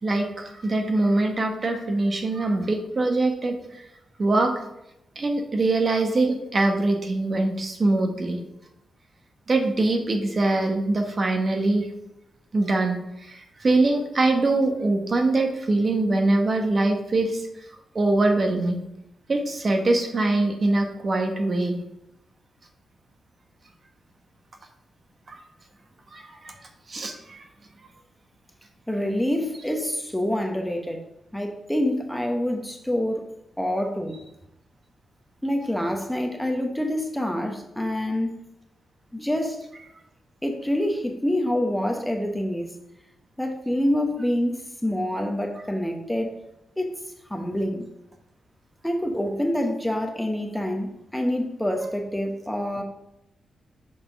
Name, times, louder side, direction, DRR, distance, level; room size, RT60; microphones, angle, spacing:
voice 1, 0.0-3.8 4.2-4.5 5.2-8.4 9.5-11.9 12.5-17.5 17.9-18.8 19.3-21.8 25.3-25.4 26.1-26.5 26.9-27.4, right 2 dB, 45° right, 3 dB, 1.2 m, -23 dB
voice 2, 28.9-31.0 31.3-33.3 33.6-34.2 35.4-38.3 39.1-39.6 40.4-42.7 43.4-46.3 46.8-47.0 47.3-47.9 48.8-52.8, left 1 dB, 5° left, 3 dB, 1.0 m, -26 dB
6.4 x 3.6 x 5.9 m, 0.84 s
cardioid pair, 75°, 0 cm